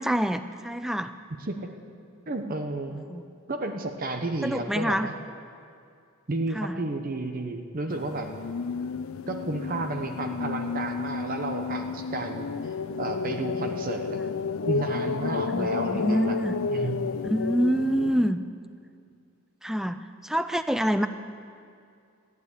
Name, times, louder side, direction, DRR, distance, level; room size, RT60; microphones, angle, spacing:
voice 1, 0.0-1.1 3.1-3.2 4.4-5.1 6.5-6.8 15.5-16.5 17.2-18.4 19.6-21.1, equal, ahead, 10 dB, 0.4 m, -26 dB
voice 2, 1.3-1.7 2.3-3.0 3.5-5.1 6.3-8.3 9.3-12.5 13.0-14.2 14.7-16.4 16.7-17.0, right 2 dB, 40° right, 5 dB, 0.8 m, -32 dB
sound 1, 7.9-18.3, left 5 dB, 70° left, 0.4 m, -31 dB
14.5 x 9.6 x 8.2 m, 2.4 s
head